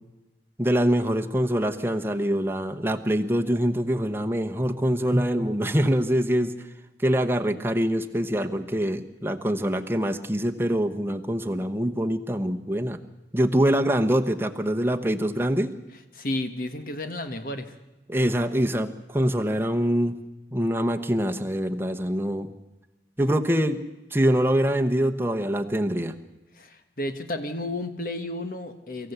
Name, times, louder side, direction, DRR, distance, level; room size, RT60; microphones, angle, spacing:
voice 1, 0.6-6.5 7.0-13.0 13.3-15.7 18.1-20.1 20.5-22.5 23.2-23.8 24.1-26.1, equal, 15° right, 4 dB, 1.0 m, -24 dB
voice 2, 16.1-17.7 26.5-29.1, left 1 dB, 50° left, 7 dB, 1.4 m, -32 dB
24.0 x 15.0 x 8.1 m, 1.1 s
head